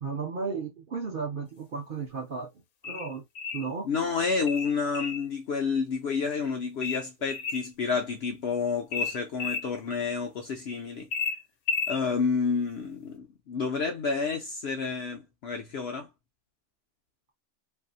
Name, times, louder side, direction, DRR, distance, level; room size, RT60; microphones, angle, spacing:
voice 1, 0.0-2.5 2.8-3.2 3.5-3.9, right 5 dB, 55° right, 0.6 m, -34 dB
sound 1, 2.8-3.7 4.5-5.3 6.8-7.7 8.9-9.7 11.1-12.0, left 5 dB, 85° left, 1.1 m, -32 dB
voice 2, 3.9-11.1 11.9-16.1, left 5 dB, 65° left, 0.7 m, -29 dB
2.7 x 2.6 x 2.4 m
omnidirectional pair, 1.5 m